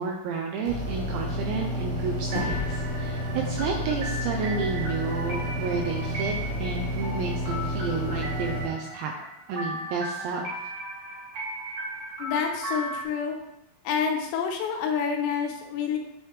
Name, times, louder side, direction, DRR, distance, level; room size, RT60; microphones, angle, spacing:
voice 1, 0.0-6.3 6.6-9.1 9.5-10.5, right 5 dB, 85° right, 0 dB, 2.6 m, -31 dB
sound 1, 0.7-8.7, equal, 65° right, 2.3 m, -31 dB
sound 2, 2.3-5.0, left 4 dB, 50° left, 2.6 m, -38 dB
sound 3, 2.3-13.0, right 1 dB, 50° right, 2.3 m, -37 dB
voice 2, 12.2-13.4 13.8-16.0, left 6 dB, 80° left, 2 dB, 2.7 m, -28 dB
9.1 x 3.4 x 3.2 m, 0.82 s
omnidirectional pair, 5.7 m